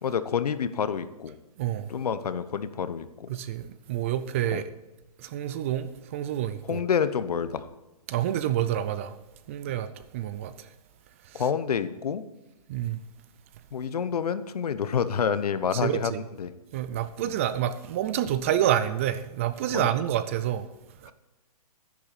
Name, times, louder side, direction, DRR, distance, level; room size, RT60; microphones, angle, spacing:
voice 1, 0.0-1.4 1.9-3.3 4.5-4.6 6.7-7.7 9.7-9.8 11.3-12.2 13.7-16.1 16.4-16.5 17.2-17.3 19.7-19.9 21.1-21.2, left 7 dB, 75° left, 1.0 m, -28 dB
voice 2, 1.6-1.9 3.3-4.7 5.2-6.8 8.1-9.2 9.5-10.7 11.3-11.4 12.7-13.0 15.8-16.2 16.7-20.7 21.0-21.1, right 11 dB, 20° right, 0.4 m, -28 dB
10.5 x 10.5 x 4.2 m
hypercardioid pair, 155°, 20 cm